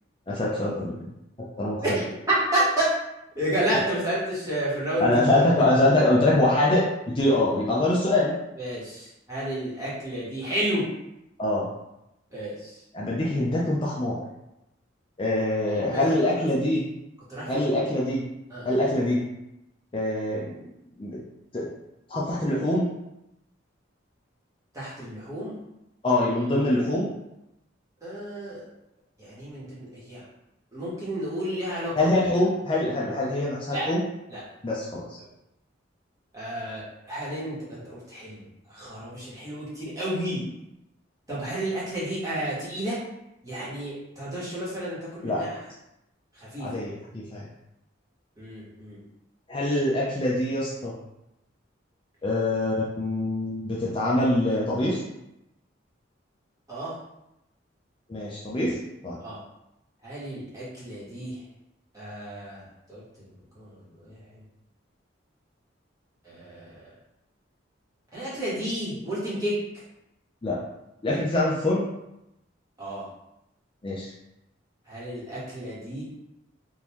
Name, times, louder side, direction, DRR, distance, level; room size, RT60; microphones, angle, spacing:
voice 1, 0.3-0.9 1.6-1.8 5.0-6.9 7.1-8.3 11.4-11.7 12.9-14.2 15.2-16.8 17.5-18.2 18.6-19.2 19.9-20.6 21.0-21.2 21.5-21.7 22.1-22.8 26.0-27.1 31.9-34.0 34.6-35.2 45.2-45.4 46.6-47.5 49.5-50.9 52.2-55.0 58.1-58.8 59.0-59.2 70.4-70.6 71.0-71.9 73.8-74.1, left 1 dB, 25° left, -5 dB, 0.5 m, -24 dB
voice 2, 1.8-2.9 3.3-5.2 8.6-10.8 12.3-12.8 15.7-16.1 17.3-17.8 18.5-18.7 24.7-25.6 28.0-28.6 29.2-30.2 30.7-32.1 33.7-33.9 34.3-34.4 36.3-40.4 41.3-43.0 43.4-45.6 46.4-46.7 48.4-49.0 56.7-56.9 59.2-59.4 60.0-61.3 61.9-63.3 63.5-64.2 66.2-66.9 68.1-69.5 71.1-71.2 72.8-73.1 74.9-76.0, right 1 dB, 15° right, -9 dB, 1.3 m, -31 dB
3.7 x 2.6 x 3.0 m, 0.86 s
head